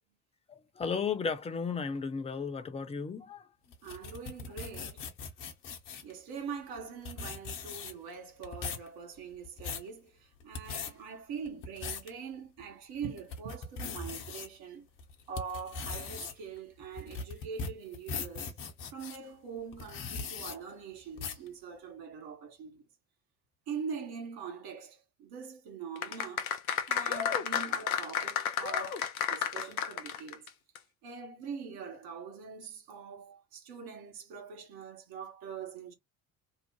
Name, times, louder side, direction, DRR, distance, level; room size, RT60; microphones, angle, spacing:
voice 1, 0.8-3.4, left 5 dB, 15° left, 0.5 m, -34 dB
sound 1, 3.7-6.1 6.8-6.9 7.0-8.1 8.4-8.9 9.3-9.9 10.4-10.9 11.5-12.1 12.6-12.7 13.2-14.5 15.0-19.2 19.7-20.6 21.2-21.5, left 5 dB, 50° left, 1.0 m, -39 dB
voice 2, 3.8-5.1 6.0-14.9 15.3-18.5 18.9-22.8 23.7-26.5 26.9-30.5 31.0-35.9, right 6 dB, 60° right, 1.1 m, -43 dB
sound 2, 26.0-30.5 30.8-30.9, left 8 dB, 85° left, 0.5 m, -32 dB
2.7 x 2.1 x 3.0 m
figure-of-eight pair, 55°, 41 cm